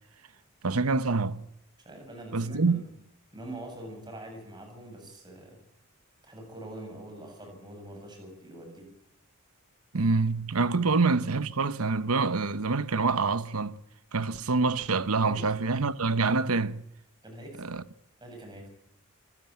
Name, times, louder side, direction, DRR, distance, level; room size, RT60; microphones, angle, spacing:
voice 1, 0.6-1.4 2.3-2.8 9.9-13.8 14.1-16.8 17.6-17.8, right 4 dB, 90° right, 1.0 m, -26 dB
voice 2, 1.8-2.8 3.3-5.6 6.2-8.9 15.2-15.4 17.2-17.6 18.2-18.7, right 1 dB, 20° right, 7.4 m, -44 dB
26.0 x 15.0 x 9.0 m
head